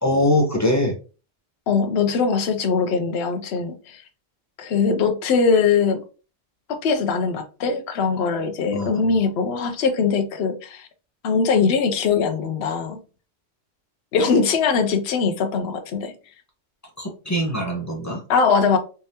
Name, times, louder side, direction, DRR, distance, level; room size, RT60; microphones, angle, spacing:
voice 1, 0.0-1.0 8.7-9.0 17.0-18.2, left 1 dB, 15° left, 0.8 m, -22 dB
voice 2, 1.7-4.0 4.6-6.0 6.7-10.9 11.2-13.0 14.1-16.1 18.3-18.8, left 5 dB, 60° left, 0.8 m, -21 dB
3.5 x 3.2 x 2.8 m
omnidirectional pair, 1.3 m